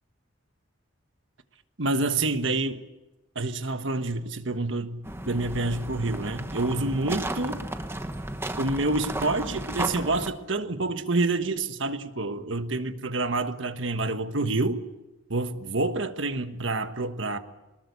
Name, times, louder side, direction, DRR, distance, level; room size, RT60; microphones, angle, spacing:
voice 1, 1.8-2.8 3.3-7.7 8.6-14.8 15.3-17.4, right 2 dB, 70° right, 1.4 m, -28 dB
sound 1, 5.0-10.3, right 1 dB, 10° right, 1.3 m, -34 dB
23.0 x 20.0 x 8.3 m
head